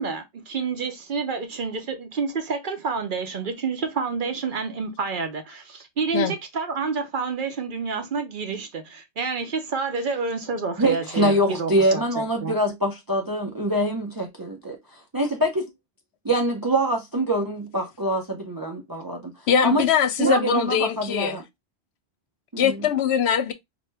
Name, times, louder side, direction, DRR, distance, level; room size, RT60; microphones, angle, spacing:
voice 1, 0.0-12.6 20.2-20.4, right 4 dB, 55° right, 0.7 m, -29 dB
voice 2, 10.8-15.6 16.2-19.3 19.6-19.8 20.2-21.4 22.5-22.9, right 1 dB, 35° right, 0.4 m, -24 dB
voice 3, 19.5-21.4 22.6-23.5, left 8 dB, 75° left, 0.8 m, -22 dB
4.2 x 2.1 x 3.2 m
omnidirectional pair, 1.1 m